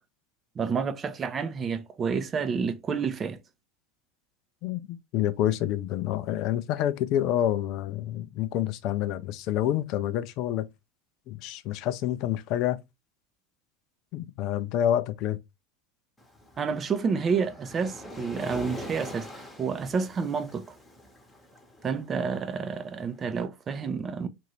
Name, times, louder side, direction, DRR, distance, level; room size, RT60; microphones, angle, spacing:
voice 1, 0.6-3.4 16.6-20.8 21.8-24.3, right 5 dB, 30° right, 0.5 m, -29 dB
voice 2, 4.6-10.7 11.3-12.8 14.1-15.4, left 11 dB, 50° left, 0.4 m, -28 dB
Waves surf, 16.2-23.3, left 1 dB, 10° left, 1.0 m, -44 dB
2.7 x 2.6 x 3.1 m
figure-of-eight pair, 80°, 0 cm